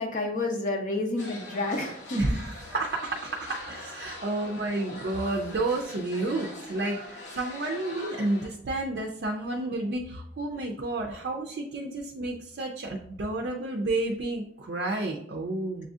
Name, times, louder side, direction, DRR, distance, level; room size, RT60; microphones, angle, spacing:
voice 1, 0.0-2.4, left 2 dB, 45° left, 2 dB, 0.5 m, -30 dB
sound 1, 1.2-8.5, left 1 dB, 75° left, 0.8 m, -43 dB
voice 2, 2.1-15.9, right 2 dB, 60° right, 1 dB, 0.4 m, -31 dB
6.7 x 2.6 x 2.4 m, 0.70 s
head